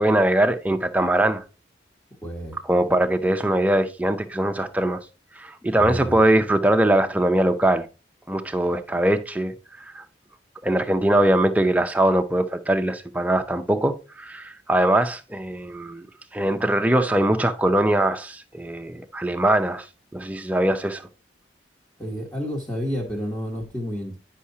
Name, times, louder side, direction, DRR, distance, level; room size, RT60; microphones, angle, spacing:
voice 1, 0.0-1.4 2.7-5.0 5.4-7.9 8.3-9.5 9.9-10.0 10.6-16.1 16.3-19.9 20.1-21.1, right 1 dB, 10° right, 0.5 m, -21 dB
voice 2, 2.2-2.6 5.7-6.2 22.0-24.2, equal, 10° left, 1.2 m, -30 dB
9.8 x 5.6 x 2.7 m
head